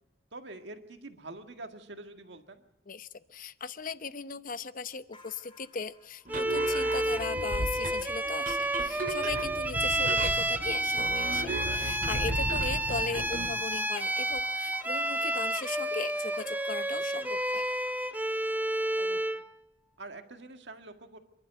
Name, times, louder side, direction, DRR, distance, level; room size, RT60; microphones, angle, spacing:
voice 1, 0.3-2.6 9.9-10.1 19.0-19.4 20.0-21.2, right 2 dB, 65° right, 6 dB, 1.9 m, -46 dB
voice 2, 2.9-17.6, left 5 dB, 50° left, 13 dB, 0.8 m, -38 dB
sound 1, 5.1-17.9, left 3 dB, 30° left, 3.5 m, -53 dB
Bowed string instrument, 6.3-19.5, right 1 dB, 10° right, 0.6 m, -30 dB
sound 2, 6.3-13.6, right 2 dB, 45° right, 2.3 m, -36 dB
27.5 x 12.0 x 8.0 m, 0.99 s
head